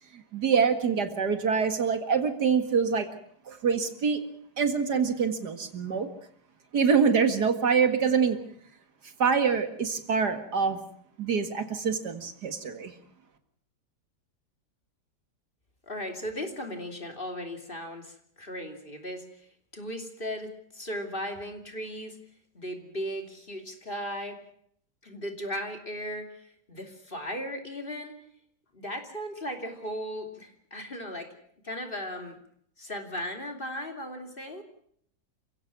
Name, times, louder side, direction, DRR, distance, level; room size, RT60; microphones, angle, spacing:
voice 1, 0.1-3.1 3.5-4.2 4.6-6.1 6.7-8.4 9.2-10.8 11.2-12.9, right 6 dB, 70° right, 8 dB, 2.5 m, -25 dB
voice 2, 15.9-19.2 19.7-22.2 22.5-24.4 25.0-28.1 28.7-31.4 31.6-32.4 32.8-34.6, equal, 30° left, 4 dB, 3.2 m, -37 dB
29.0 x 16.5 x 6.0 m, 0.66 s
omnidirectional pair, 1.8 m